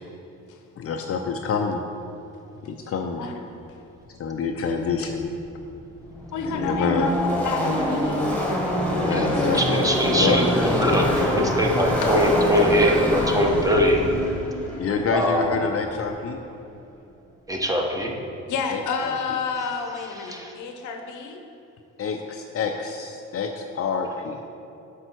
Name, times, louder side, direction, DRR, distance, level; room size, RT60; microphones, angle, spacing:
voice 1, 0.8-1.8 2.6-3.2 4.2-5.2 6.5-7.1 8.9-9.6 10.1-10.4 14.8-16.4 18.7-19.2 22.0-24.4, left 5 dB, 50° left, 3 dB, 0.6 m, -27 dB
Car passing by / Race car auto racing, 5.4-5.5 5.6-16.2, equal, 5° left, 1.6 m, -25 dB
voice 2, 6.3-8.3 9.1-9.7 12.0-12.2 13.3-13.4 18.5-21.4, left 4 dB, 80° left, 5 dB, 0.9 m, -29 dB
voice 3, 9.1-14.0 15.1-15.6 17.5-18.1 20.1-20.5, equal, 10° right, 1 dB, 1.0 m, -22 dB
7.8 x 5.5 x 4.5 m, 2.8 s
cardioid pair, 90°, 30 cm